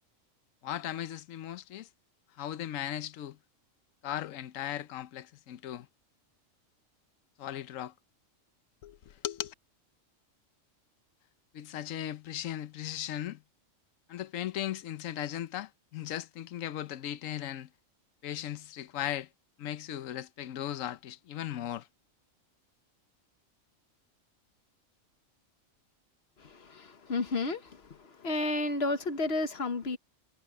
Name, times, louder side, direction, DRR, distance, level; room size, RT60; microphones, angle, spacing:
voice 1, 0.6-1.9 2.4-3.4 4.0-5.9 7.4-7.9 8.8-9.5 11.5-13.4 14.1-17.7 18.2-19.3 19.6-21.9, left 11 dB, 75° left, 1.1 m, -37 dB
voice 2, 26.4-30.0, left 2 dB, 50° left, 1.5 m, -32 dB
omnidirectional pair, 1.4 m